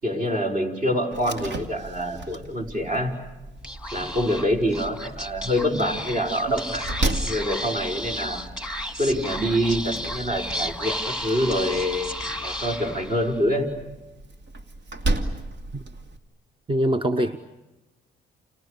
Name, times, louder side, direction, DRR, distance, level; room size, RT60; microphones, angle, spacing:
voice 1, 0.0-3.1 3.9-6.9 7.2-8.4 9.0-12.1 12.4-13.7 17.2-17.3, equal, 45° right, 3 dB, 5.8 m, -25 dB
Slam, 1.1-16.2, right 2 dB, 70° right, 2.6 m, -34 dB
Speech / Whispering, 3.6-13.4, left 1 dB, 5° right, 2.4 m, -33 dB
voice 2, 16.7-17.4, right 1 dB, 25° right, 11 dB, 1.0 m, -23 dB
30.0 x 29.0 x 6.8 m, 1.0 s
cardioid pair, 90°, 20 cm